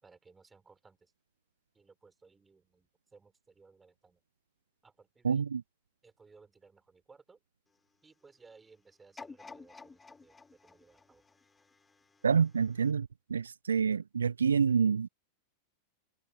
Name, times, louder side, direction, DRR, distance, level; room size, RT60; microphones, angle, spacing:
voice 1, 0.0-1.1 1.7-4.2 4.8-5.4 6.0-7.4 8.0-11.2, right 4 dB, 15° right, 5.6 m, -60 dB
voice 2, 5.2-5.6 12.2-15.1, right 6 dB, 70° right, 0.4 m, -27 dB
sound 1, 9.2-12.2 12.8-12.9, left 4 dB, 10° left, 6.1 m, -51 dB
figure-of-eight pair, 90°, 0 cm